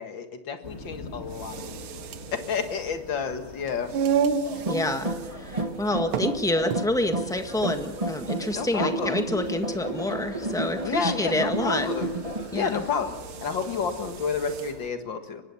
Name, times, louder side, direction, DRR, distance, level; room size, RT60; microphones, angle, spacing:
voice 1, 0.0-3.9 4.5-4.6 8.5-9.2 10.8-12.1 12.5-13.2 13.4-15.4, left 6 dB, 65° left, 7 dB, 2.4 m, -30 dB
sound 1, 0.6-14.9, left 2 dB, 30° left, 2.4 m, -45 dB
sound 2, 1.2-14.8, right 6 dB, 80° right, 1.9 m, -34 dB
sound 3, 4.4-12.5, right 1 dB, 20° right, 1.5 m, -31 dB
voice 2, 4.7-11.9 12.5-12.8, left 1 dB, ahead, 6 dB, 1.3 m, -28 dB
24.0 x 20.5 x 7.0 m, 1.2 s
omnidirectional pair, 2.2 m